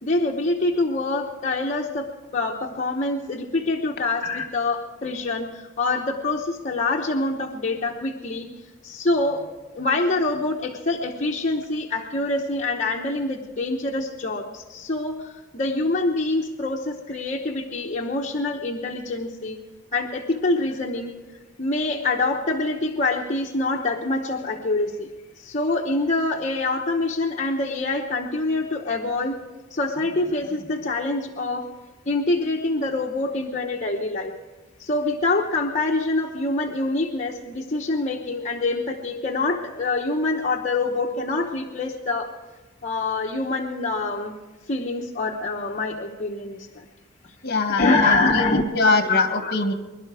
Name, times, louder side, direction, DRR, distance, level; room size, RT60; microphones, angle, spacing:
voice 1, 0.0-2.1 2.3-8.5 8.8-9.4 9.7-19.6 19.9-21.1 21.6-25.1 25.4-29.4 29.7-31.7 32.1-34.3 34.8-42.3 42.8-44.3 44.7-46.8 47.8-48.6 49.1-49.6, left 2 dB, 40° left, -1 dB, 1.0 m, -25 dB
voice 2, 47.4-49.7, left 3 dB, 55° left, 7 dB, 1.6 m, -23 dB
22.5 x 11.5 x 4.8 m, 1.2 s
head